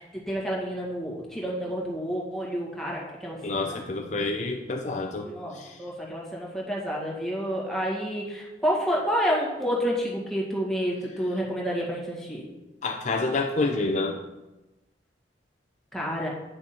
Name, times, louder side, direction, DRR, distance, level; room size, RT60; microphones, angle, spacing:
voice 1, 0.0-3.8 5.2-12.5 15.9-16.3, equal, ahead, -4 dB, 1.9 m, -29 dB
voice 2, 3.4-5.3 5.5-5.8 12.8-14.2, left 3 dB, 45° left, 3 dB, 0.5 m, -28 dB
9.1 x 6.1 x 4.3 m, 1.0 s
head